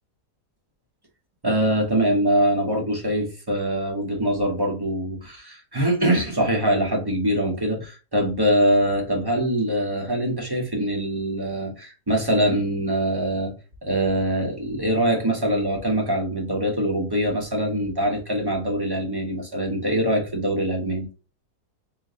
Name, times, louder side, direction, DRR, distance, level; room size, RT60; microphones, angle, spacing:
voice 1, 1.4-13.5 13.8-21.1, right 1 dB, 20° right, 0.9 m, -23 dB
3.6 x 2.9 x 3.7 m
omnidirectional pair, 1.7 m